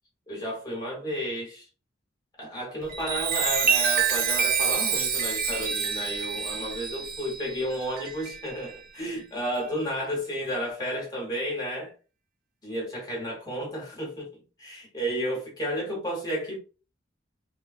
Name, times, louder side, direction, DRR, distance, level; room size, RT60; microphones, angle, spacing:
voice 1, 0.3-1.7 2.4-11.9 12.6-16.6, equal, 20° left, 1.0 m, -32 dB
Chime, 2.8-8.8 9.4-9.6, right 7 dB, 45° right, 0.5 m, -27 dB
3.2 x 2.3 x 2.4 m
head